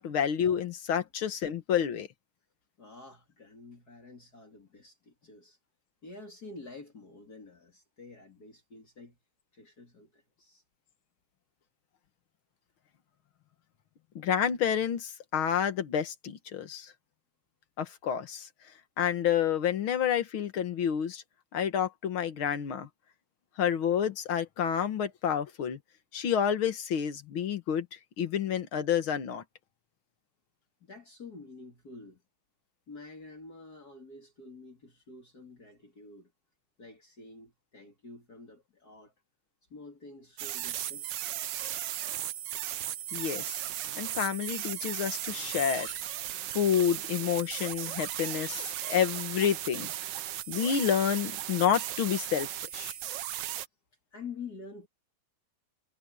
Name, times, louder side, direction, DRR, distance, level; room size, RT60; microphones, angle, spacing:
voice 1, 0.0-2.1 14.2-16.9 17.8-18.5 19.0-21.2 21.5-22.9 23.6-25.8 26.1-27.9 28.2-29.4 43.1-43.6 44.0-46.0 46.5-49.9 50.5-53.0, left 8 dB, 75° left, 2.3 m, -29 dB
voice 2, 2.8-5.6 6.0-9.2 9.5-10.6 30.8-32.2 32.9-36.3 36.8-39.1 39.7-41.1 54.1-54.9, left 4 dB, 45° left, 3.4 m, -48 dB
sound 1, 40.4-53.7, right 12 dB, 65° right, 1.3 m, -36 dB
omnidirectional pair, 2.3 m